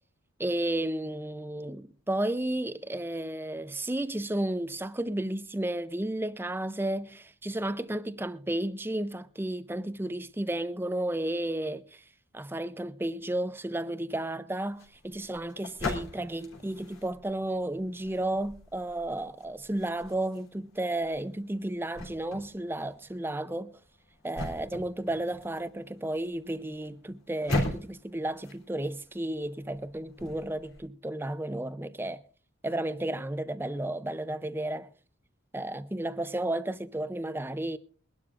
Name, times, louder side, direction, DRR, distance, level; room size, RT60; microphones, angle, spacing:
voice 1, 0.4-12.0 12.3-23.8 24.2-32.2 32.6-34.9 35.5-37.8, right 1 dB, 10° right, 0.5 m, -33 dB
sound 1, 14.7-30.8, left 1 dB, 85° left, 3.6 m, -40 dB
23.0 x 12.0 x 2.5 m
head